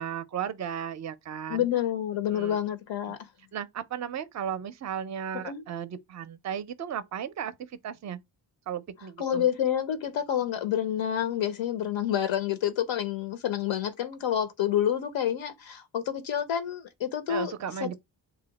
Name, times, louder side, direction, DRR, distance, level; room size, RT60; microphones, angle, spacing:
voice 1, 0.0-1.7 2.3-2.6 3.1-3.2 3.5-7.5 7.8-8.2 8.7-9.4 17.3-18.0, right 8 dB, 40° right, 0.4 m, -35 dB
voice 2, 1.5-3.2 5.3-5.6 9.2-17.5 17.8-18.0, left 10 dB, 75° left, 0.6 m, -28 dB
2.7 x 2.1 x 3.8 m
cardioid pair, 60°, 47 cm